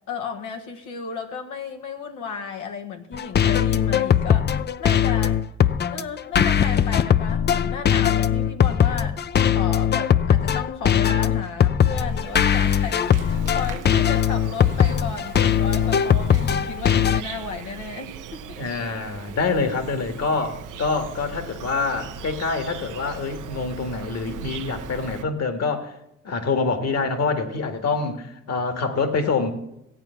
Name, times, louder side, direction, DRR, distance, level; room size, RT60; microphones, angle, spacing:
voice 1, 0.1-4.5 4.8-5.4 5.9-9.2 9.5-18.6, left 5 dB, 90° left, 4 dB, 1.4 m, -34 dB
sound 1, 3.1-17.2, left 8 dB, 35° left, 0.5 m, -20 dB
Insect, 12.0-25.2, right 7 dB, 85° right, 0.7 m, -39 dB
voice 2, 18.6-26.0 26.2-29.5, left 4 dB, 55° left, 7 dB, 1.8 m, -26 dB
15.5 x 8.7 x 5.7 m, 0.84 s
cardioid pair, 90°, 30 cm